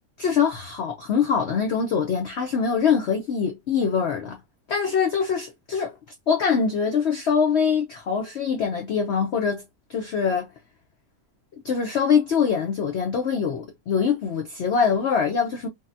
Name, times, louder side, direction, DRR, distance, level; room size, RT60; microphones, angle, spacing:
voice 1, 0.2-4.4 4.7-6.0 6.3-10.5 11.6-15.7, left 6 dB, 75° left, 0.6 m, -23 dB
3.4 x 2.1 x 2.5 m
omnidirectional pair, 1.8 m